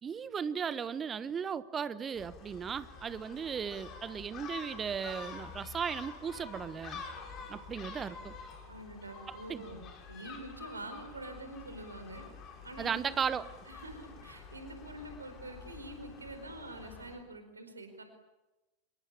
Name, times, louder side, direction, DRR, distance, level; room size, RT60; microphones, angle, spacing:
voice 1, 0.0-7.0 7.5-8.3 9.3-9.6 12.8-13.4, right 7 dB, 20° right, 16 dB, 1.3 m, -36 dB
Gull seagull, 2.1-17.2, left 5 dB, 30° left, 6.5 m, -48 dB
voice 2, 8.7-9.8 10.1-12.2 12.6-13.4 13.7-18.0, right 1 dB, 75° right, 7 dB, 4.7 m, -46 dB
26.5 x 23.0 x 8.6 m, 1.0 s
figure-of-eight pair, 90°, 0 cm